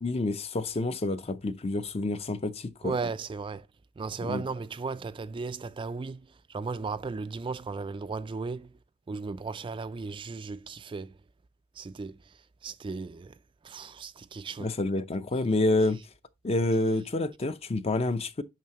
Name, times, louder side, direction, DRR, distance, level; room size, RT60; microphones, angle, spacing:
voice 1, 0.0-3.0 4.2-4.4 14.6-16.0 16.4-18.4, left 2 dB, 30° left, 0.5 m, -28 dB
voice 2, 2.8-3.7 4.0-6.2 6.5-8.7 9.1-11.1 11.8-12.3 12.6-13.3 13.6-14.7, right 4 dB, 25° right, 0.3 m, -35 dB
9.1 x 5.6 x 2.8 m
head